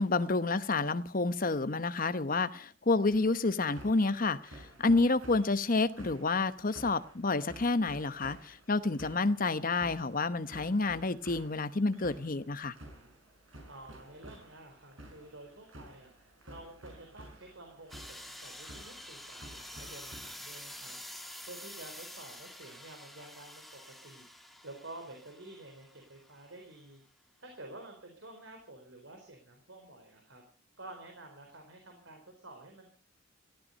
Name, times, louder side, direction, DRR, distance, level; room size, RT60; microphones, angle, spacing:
voice 1, 0.0-12.7, left 3 dB, 45° left, 1.0 m, -29 dB
sound 1, 3.1-22.7, right 1 dB, 90° right, 5.8 m, -53 dB
voice 2, 13.7-21.0 21.5-24.2 24.6-27.0 27.4-30.4 30.8-32.9, right 2 dB, 70° right, 4.3 m, -50 dB
sound 2, 17.9-26.5, left 1 dB, ahead, 1.7 m, -48 dB
18.5 x 14.5 x 5.3 m
head